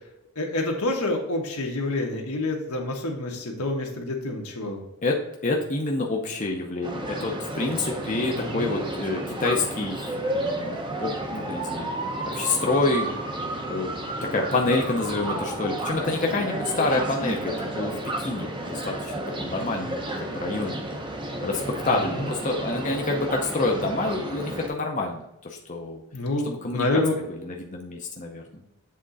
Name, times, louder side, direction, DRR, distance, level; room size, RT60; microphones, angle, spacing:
voice 1, 0.3-4.8 8.3-8.7 21.9-22.3 26.1-27.2, left 2 dB, 85° left, 1 dB, 1.3 m, -28 dB
voice 2, 5.0-11.9 12.3-13.1 13.7-13.9 14.2-18.0 18.2-20.8 21.4-26.0 26.4-27.0 27.4-28.6, left 3 dB, 35° left, 0 dB, 0.6 m, -28 dB
sound 1, 6.8-24.7, right 1 dB, 20° right, 0.7 m, -31 dB
7.5 x 3.7 x 4.0 m, 0.84 s
head